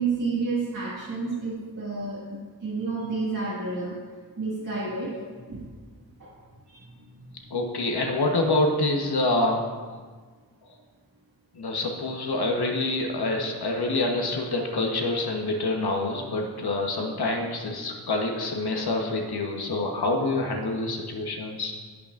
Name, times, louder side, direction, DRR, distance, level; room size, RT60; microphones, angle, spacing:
voice 1, 0.0-4.0 4.4-5.6 6.2-6.3 6.7-7.5, right 4 dB, 55° right, -8 dB, 1.8 m, -31 dB
voice 2, 7.5-9.6 11.5-21.7, left 2 dB, 90° left, 1 dB, 1.1 m, -26 dB
17.0 x 6.0 x 2.5 m, 1.5 s
wide cardioid pair, 70°, 37 cm